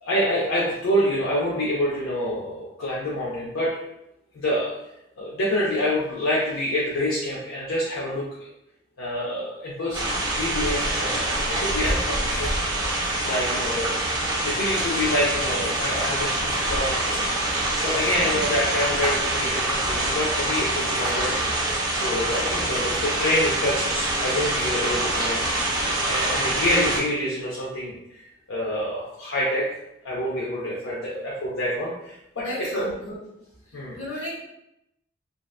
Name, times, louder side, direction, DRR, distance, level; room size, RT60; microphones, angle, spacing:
voice 1, 0.0-3.8 4.3-4.7 5.2-8.5 9.0-12.6 13.2-14.0 14.4-17.2 17.8-21.3 21.9-25.4 26.0-29.6 30.0-32.9 33.7-34.0, left 1 dB, 85° left, -6 dB, 0.5 m, -27 dB
sound 1, 9.9-27.0, right 1 dB, 20° right, 0.4 m, -25 dB
voice 2, 32.4-33.2 33.7-34.4, left 1 dB, 70° left, -6 dB, 1.1 m, -35 dB
2.7 x 2.1 x 2.3 m, 0.84 s
head